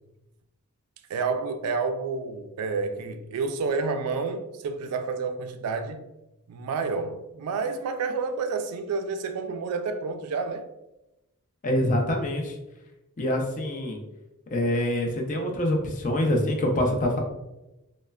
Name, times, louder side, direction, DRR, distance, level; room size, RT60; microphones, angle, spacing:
voice 1, 1.1-6.0 6.5-10.7, right 4 dB, 80° right, 0.3 m, -29 dB
voice 2, 11.6-12.5 13.2-14.0 14.5-17.2, left 1 dB, 35° left, 0.4 m, -25 dB
3.2 x 2.1 x 2.2 m
head